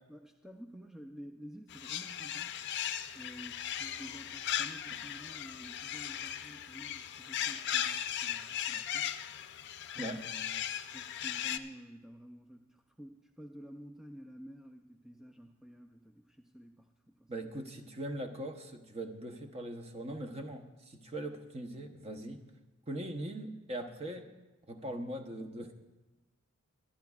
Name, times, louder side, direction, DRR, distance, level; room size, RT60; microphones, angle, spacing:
voice 1, 0.1-2.6 3.1-9.2 9.9-17.5, equal, ahead, 3 dB, 0.4 m, -51 dB
sound 1, 1.7-11.6, left 10 dB, 55° left, 0.5 m, -37 dB
voice 2, 10.0-10.3 17.3-22.5 22.9-24.3 24.7-25.7, right 1 dB, 30° right, 5 dB, 0.8 m, -41 dB
24.0 x 11.5 x 2.4 m, 1.1 s
head